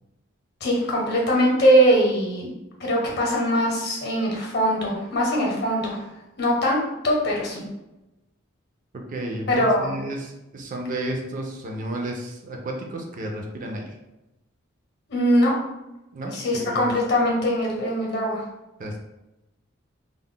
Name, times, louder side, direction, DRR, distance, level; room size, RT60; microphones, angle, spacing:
voice 1, 0.6-2.5 2.8-6.0 6.4-7.6 9.5-9.9 15.1-15.5 16.3-18.4, equal, 50° left, -1 dB, 0.7 m, -21 dB
voice 2, 8.9-14.0 16.1-16.9 18.8-19.0, right 1 dB, 40° right, 2 dB, 0.4 m, -32 dB
2.2 x 2.0 x 3.6 m, 0.96 s
head